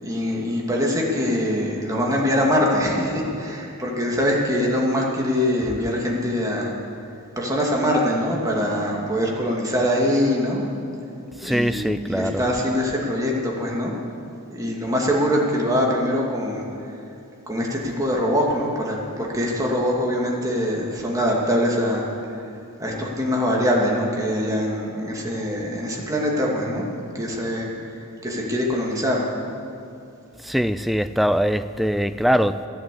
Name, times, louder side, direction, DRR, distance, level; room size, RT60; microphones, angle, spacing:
voice 1, 0.0-7.1 7.4-10.6 11.4-13.9 14.5-16.9 17.5-22.5 22.8-26.8 27.1-29.3, equal, 15° right, -3 dB, 2.4 m, -23 dB
voice 2, 11.4-12.4 30.4-32.7, equal, ahead, 12 dB, 0.3 m, -22 dB
15.5 x 10.5 x 8.6 m, 2.6 s
head